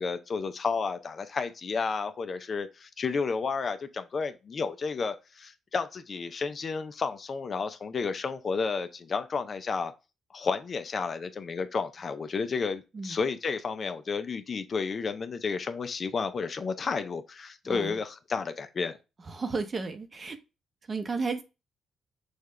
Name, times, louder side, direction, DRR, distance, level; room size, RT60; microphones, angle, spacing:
voice 1, 0.0-9.9 10.3-19.0, left 5 dB, 45° left, 0.5 m, -31 dB
voice 2, 17.7-18.0 19.3-20.4 20.9-21.4, right 4 dB, 35° right, 0.8 m, -33 dB
6.4 x 2.4 x 3.2 m
cardioid pair, 90°, 0 cm